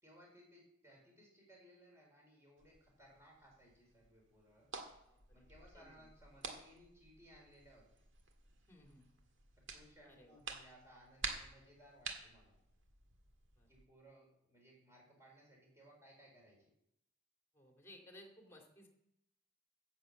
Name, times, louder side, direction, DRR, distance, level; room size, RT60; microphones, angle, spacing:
voice 1, 0.0-4.7 5.3-7.9 9.6-12.6 13.7-16.6, equal, 15° right, -1 dB, 4.4 m, -63 dB
sound 1, 2.6-13.8, right 5 dB, 60° right, 1.8 m, -51 dB
voice 2, 5.0-5.5 5.7-6.1 8.7-9.1 10.0-10.4 13.6-13.7 17.5-18.9, left 1 dB, 10° left, 2 dB, 2.3 m, -60 dB
11.0 x 8.0 x 7.7 m, 0.79 s
head